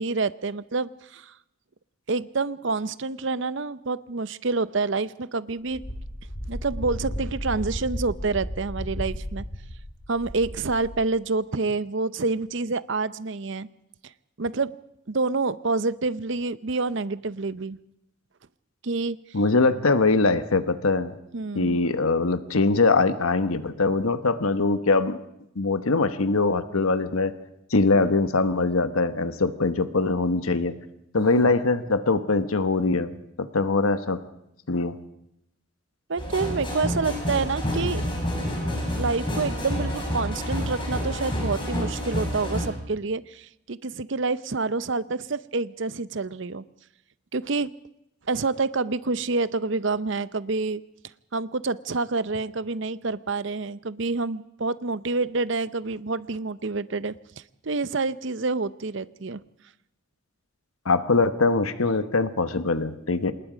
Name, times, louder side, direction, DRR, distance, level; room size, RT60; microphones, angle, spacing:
voice 1, 0.0-1.3 2.1-5.8 6.5-9.4 10.1-13.7 14.4-14.7 15.1-17.8 18.8-19.2 21.3-21.8 31.3-31.5 36.1-38.0 39.0-46.6 47.3-47.7 48.3-50.8 51.3-57.1 57.6-59.4, right 3 dB, 60° right, 16 dB, 0.7 m, -27 dB
Wind, 5.7-11.0, equal, 45° left, 5.0 m, -34 dB
voice 2, 19.3-21.1 21.5-25.2 25.5-27.3 27.7-30.7 31.1-33.1 33.4-34.2 34.7-35.0 60.8-63.3, left 3 dB, 85° left, 11 dB, 1.2 m, -22 dB
sound 1, 36.2-42.7, equal, 25° left, 5.3 m, -28 dB
27.0 x 20.0 x 5.1 m, 0.83 s
head